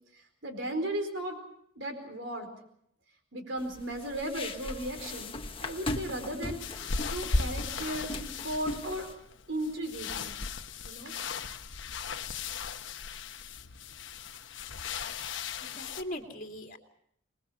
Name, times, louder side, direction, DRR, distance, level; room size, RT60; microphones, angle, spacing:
voice 1, 0.1-1.4 1.8-2.5 3.3-9.1 9.5-10.4 10.8-11.1, right 1 dB, 65° right, 6 dB, 4.5 m, -36 dB
sound 1, 3.6-9.1, left 2 dB, 25° left, 1.3 m, -39 dB
sound 2, 6.6-16.0, left 4 dB, 60° left, 1.1 m, -36 dB
voice 2, 15.6-16.8, equal, 40° left, 2 dB, 2.7 m, -40 dB
27.5 x 20.5 x 5.8 m, 0.71 s
head